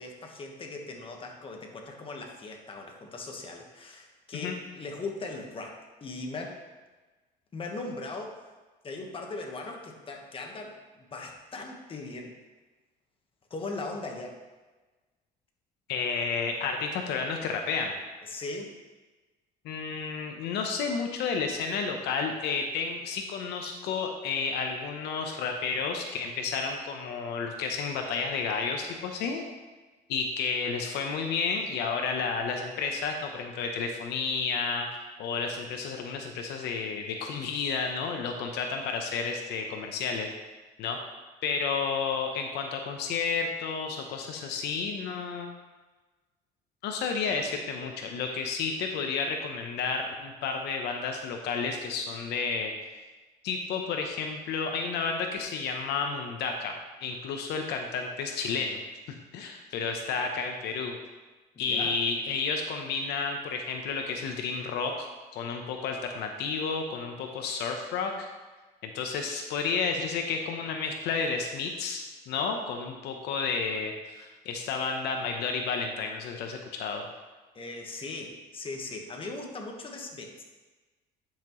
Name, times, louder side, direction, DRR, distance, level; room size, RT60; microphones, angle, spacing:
voice 1, 0.0-6.6 7.5-8.5 8.8-12.4 13.5-14.4 18.3-18.7 61.7-62.0 77.5-80.4, left 3 dB, 30° left, 1 dB, 1.3 m, -39 dB
voice 2, 15.9-17.9 19.6-29.4 30.1-34.9 35.2-40.3 40.8-41.0 41.4-45.5 46.8-52.7 53.4-56.7 57.0-58.8 59.1-60.9 61.6-68.3 68.8-77.1, left 5 dB, 80° left, 4 dB, 0.9 m, -31 dB
10.5 x 5.9 x 3.1 m, 1.2 s
cardioid pair, 110°, 17 cm